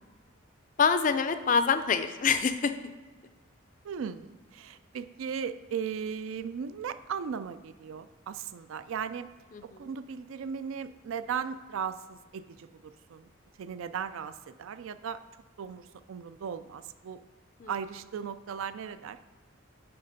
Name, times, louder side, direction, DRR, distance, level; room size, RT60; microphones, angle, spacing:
voice 1, 0.8-2.8 9.5-9.9 17.6-17.7, left 6 dB, 40° left, 10 dB, 0.4 m, -26 dB
voice 2, 3.8-9.3 9.8-13.3 13.6-15.2 15.6-17.2 17.7-19.2, right 7 dB, 75° right, 12 dB, 0.4 m, -37 dB
9.6 x 3.3 x 5.2 m, 1.3 s
head